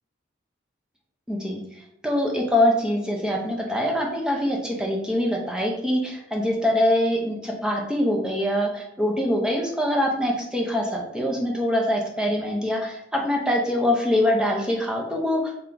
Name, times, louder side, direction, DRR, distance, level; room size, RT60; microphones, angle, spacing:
voice 1, 1.3-1.6 2.0-15.5, left 1 dB, 5° right, -1 dB, 0.6 m, -24 dB
3.4 x 2.9 x 3.8 m, 0.77 s
head